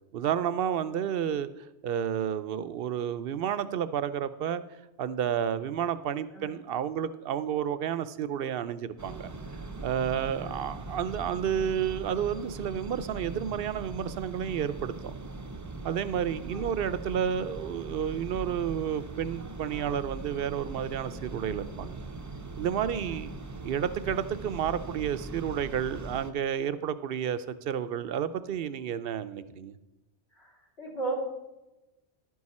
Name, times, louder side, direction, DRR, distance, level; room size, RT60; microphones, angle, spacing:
voice 1, 0.1-1.5 1.8-4.6 5.0-9.3 9.8-15.1 15.8-22.0 22.6-23.3 23.6-29.7, right 8 dB, 65° right, 14 dB, 0.7 m, -31 dB
sound 1, 9.0-26.3, right 2 dB, 25° right, 0.5 m, -40 dB
voice 2, 16.5-16.8 23.0-23.2 30.3-31.2, right 3 dB, 65° left, -1 dB, 2.9 m, -37 dB
11.5 x 9.4 x 4.2 m, 1.0 s
omnidirectional pair, 1.1 m